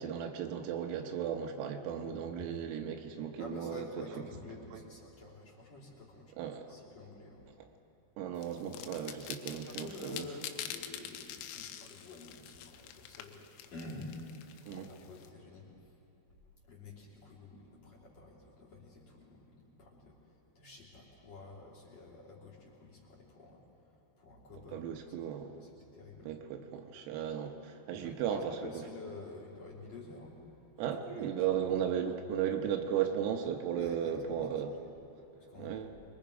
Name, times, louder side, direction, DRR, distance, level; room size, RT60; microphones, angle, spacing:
voice 1, 0.0-4.2 4.7-4.8 6.4-6.7 8.2-10.3 14.7-14.9 24.7-25.6 26.3-28.6 30.8-34.7 35.6-35.9, right 9 dB, 85° right, 4 dB, 3.7 m, -35 dB
voice 2, 3.4-7.5 9.4-15.9 16.7-25.1 25.6-26.3 28.0-30.4 30.8-31.3 33.7-34.5 35.4-35.8, left 3 dB, 35° left, -4 dB, 3.7 m, -50 dB
sound 1, 8.4-15.3, left 10 dB, 85° left, 3.6 m, -45 dB
26.5 x 22.5 x 5.1 m, 2.9 s
omnidirectional pair, 6.0 m